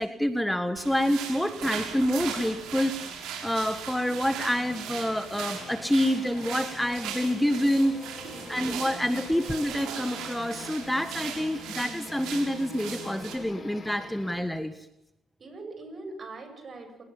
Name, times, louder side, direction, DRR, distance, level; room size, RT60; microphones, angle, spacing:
voice 1, 0.0-8.0 8.5-14.7, equal, 5° left, 10 dB, 1.8 m, -27 dB
Walking Through a Tunnel, 0.8-13.3, right 7 dB, 90° right, 6.4 m, -39 dB
sound 1, 4.6-14.6, left 4 dB, 35° left, 4.5 m, -45 dB
voice 2, 8.3-8.7 15.4-17.0, right 3 dB, 45° right, 6 dB, 8.0 m, -42 dB
28.0 x 20.0 x 7.4 m, 0.81 s
cardioid pair, 90°, 0 cm